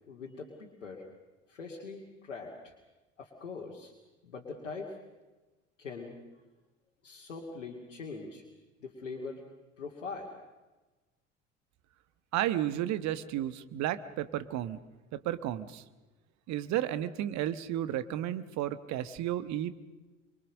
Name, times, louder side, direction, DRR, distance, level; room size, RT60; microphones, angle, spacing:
voice 1, 0.1-1.0 1.5-2.7 3.2-3.9 4.2-5.0 5.8-6.2 7.0-8.4 8.8-9.4 9.8-10.3, left 4 dB, 80° left, -1 dB, 2.5 m, -42 dB
voice 2, 12.3-14.8 15.1-15.8 16.5-19.9, right 12 dB, 50° right, 13 dB, 1.3 m, -33 dB
25.0 x 22.5 x 6.5 m, 1.2 s
figure-of-eight pair, 60°, 36 cm